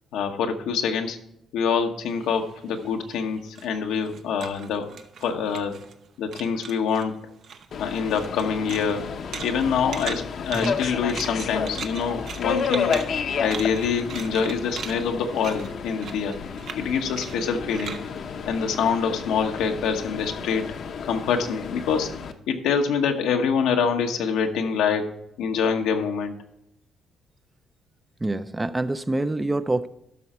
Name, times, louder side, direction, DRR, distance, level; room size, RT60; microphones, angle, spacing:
voice 1, 0.1-1.2 1.5-4.9 5.2-5.8 6.2-7.2 7.8-9.0 9.4-13.0 13.4-16.4 16.7-18.0 18.5-20.7 21.1-22.1 22.5-25.1 25.4-26.4, left 6 dB, 90° left, 1.0 m, -25 dB
sound 1, 2.1-6.1 6.3-7.1 7.4-19.2, right 6 dB, 65° right, 0.8 m, -39 dB
Subway metro underground, 7.7-22.3, left 6 dB, 60° left, 0.8 m, -32 dB
voice 2, 28.2-29.9, right 2 dB, 15° right, 0.5 m, -26 dB
12.5 x 5.8 x 4.3 m
cardioid pair, 90°, 0 cm